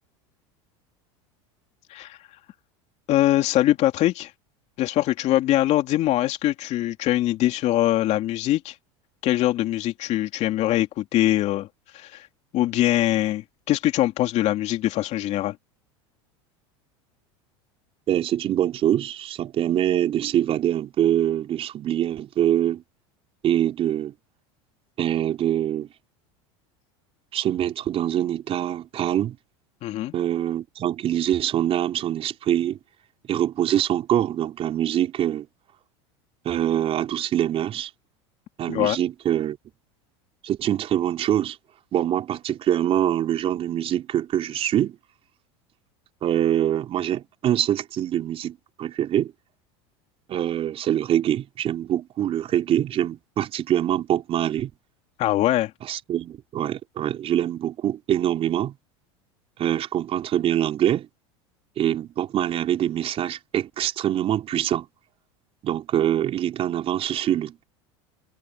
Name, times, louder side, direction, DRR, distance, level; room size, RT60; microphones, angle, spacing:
voice 1, 3.1-4.3 4.8-8.7 9.2-11.7 11.9-12.3 12.5-15.6 29.8-30.1 38.7-39.0 55.2-55.7, left 14 dB, 50° left, 2.9 m, -22 dB
voice 2, 18.1-22.8 23.4-24.1 25.0-25.9 27.3-29.4 30.1-32.8 33.3-35.5 36.4-37.9 38.6-39.6 40.4-41.6 41.9-45.0 46.2-49.3 50.3-54.7 55.8-58.8 59.6-61.1 61.8-64.9 65.6-67.6, right 11 dB, 40° right, 4.1 m, -24 dB
supercardioid pair, 110°, 15 cm